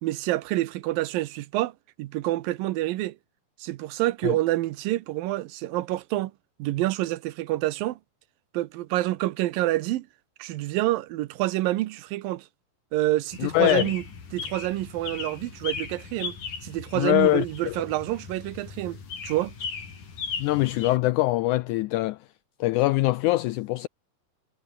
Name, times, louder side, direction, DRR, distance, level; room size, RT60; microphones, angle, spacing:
voice 1, 0.0-1.7 2.0-3.2 3.6-6.3 6.6-8.0 8.5-10.1 10.4-12.5 12.9-14.0 14.3-16.4 16.6-19.0 19.2-19.5, right 16 dB, 90° right, 2.6 m, -27 dB
sound 1, 13.3-21.0, left 5 dB, 65° left, 6.1 m, -37 dB
voice 2, 13.4-13.9 17.0-17.8 20.4-22.2 22.6-23.9, left 18 dB, 90° left, 1.7 m, -23 dB
omnidirectional pair, 4.1 m